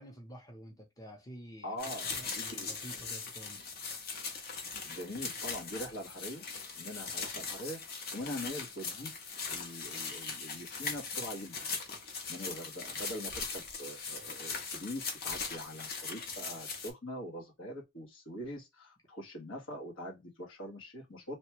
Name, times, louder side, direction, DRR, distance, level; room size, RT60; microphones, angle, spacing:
voice 1, 0.0-3.7, right 1 dB, 20° left, 0.8 m, -50 dB
voice 2, 1.6-2.8 4.8-6.4 6.8-9.1 9.5-11.6 12.3-21.4, equal, 90° left, 1.3 m, -43 dB
sound 1, 1.8-16.9, left 4 dB, 50° left, 0.8 m, -40 dB
3.0 x 2.3 x 3.0 m
head